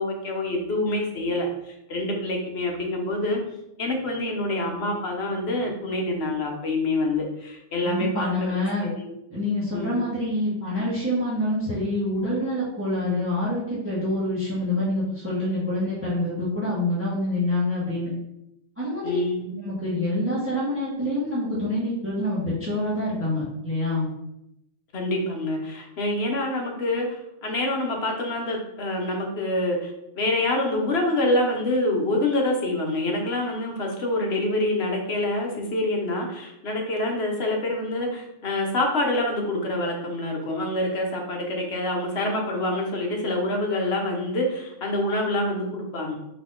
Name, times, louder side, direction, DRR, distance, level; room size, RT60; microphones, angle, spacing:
voice 1, 0.0-3.4 3.8-8.6 9.0-9.1 9.7-9.9 13.0-13.3 19.0-19.6 24.9-46.2, left 1 dB, 55° left, 1 dB, 1.1 m, -26 dB
voice 2, 7.8-8.9 9.3-18.1 18.8-19.2 19.6-24.1, left 1 dB, 10° right, -8 dB, 1.2 m, -26 dB
4.0 x 2.9 x 3.7 m, 0.83 s
omnidirectional pair, 1.3 m